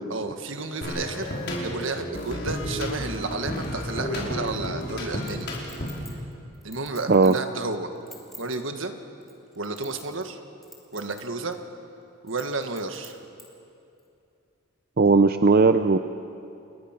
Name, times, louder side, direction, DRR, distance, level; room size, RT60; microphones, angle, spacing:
voice 1, 0.1-5.5 6.6-7.9 8.4-8.9 9.5-10.4 10.9-11.6 12.2-13.2, right 3 dB, 70° right, 7 dB, 1.7 m, -32 dB
sound 1, 0.8-6.1, equal, 55° left, 5.2 m, -32 dB
Chink clink, 5.3-7.5 7.9-8.6 9.2-10.3 10.6-11.2 11.5-11.6 12.3-13.5 14.0-14.1, left 1 dB, ahead, 3.0 m, -47 dB
voice 2, 15.0-16.0, right 4 dB, 45° right, 9 dB, 0.5 m, -17 dB
28.5 x 21.5 x 6.0 m, 2.6 s
head